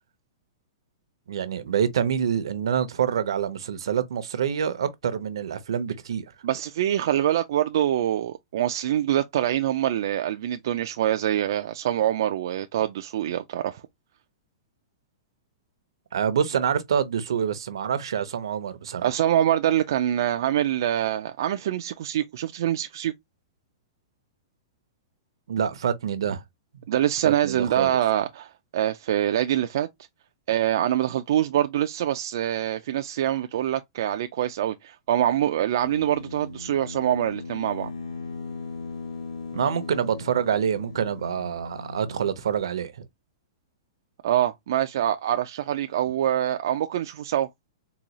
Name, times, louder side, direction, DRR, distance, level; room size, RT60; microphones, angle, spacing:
voice 1, 1.3-6.2 16.1-19.1 25.5-26.4 27.2-27.9 39.5-43.1, right 8 dB, 75° right, 0.7 m, -26 dB
voice 2, 6.4-13.8 19.0-23.1 26.9-29.9 30.5-37.9 44.2-47.5, right 11 dB, 45° right, 0.3 m, -25 dB
sound 1, 35.8-42.4, left 3 dB, 80° left, 1.8 m, -38 dB
3.9 x 2.3 x 2.9 m
hypercardioid pair, 180°, 3 cm